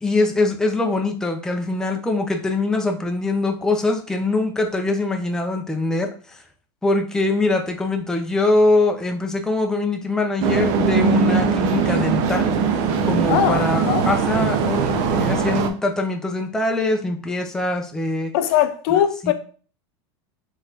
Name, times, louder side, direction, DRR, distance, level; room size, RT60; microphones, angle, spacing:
voice 1, 0.0-6.4 6.8-12.5 13.0-18.3 19.2-19.3, left 2 dB, 5° left, 0.5 m, -23 dB
sound 1, 10.4-15.7, right 5 dB, 55° right, 0.6 m, -20 dB
voice 2, 13.3-14.1 18.3-19.3, left 10 dB, 65° left, 0.5 m, -20 dB
3.9 x 3.2 x 2.8 m
supercardioid pair, 120°, 14 cm